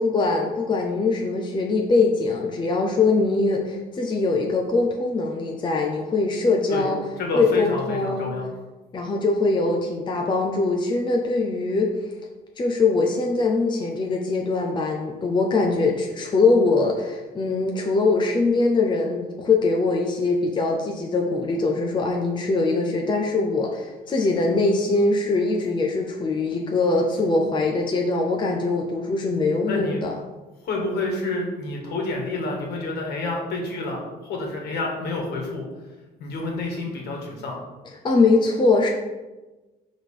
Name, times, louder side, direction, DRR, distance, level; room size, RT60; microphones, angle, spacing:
voice 1, 0.0-7.0 7.3-8.3 8.9-11.9 12.6-30.2 38.0-38.9, left 3 dB, 30° left, 1 dB, 0.7 m, -22 dB
voice 2, 7.2-8.4 29.7-30.0 30.6-35.6 36.2-37.6, left 2 dB, 70° left, 0 dB, 1.8 m, -28 dB
5.5 x 3.7 x 5.0 m, 1.1 s
cardioid pair, 110°, 17 cm